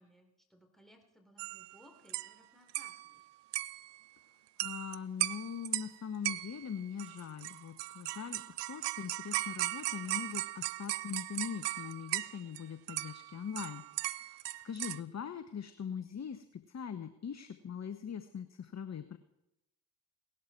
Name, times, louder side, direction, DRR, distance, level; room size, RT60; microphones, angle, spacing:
voice 1, 0.0-3.2, equal, ahead, 3 dB, 4.0 m, -62 dB
sound 1, 1.4-1.8 2.1-2.3 2.7-3.1 3.5-4.0 4.6-5.0 5.2-5.9 6.2-6.7 7.0-12.6 12.9-15.0, right 16 dB, 60° right, 0.6 m, -37 dB
voice 2, 4.6-13.8 14.1-19.2, left 7 dB, 35° left, 11 dB, 1.0 m, -42 dB
18.0 x 12.0 x 4.6 m, 0.89 s
hypercardioid pair, 40°, 48 cm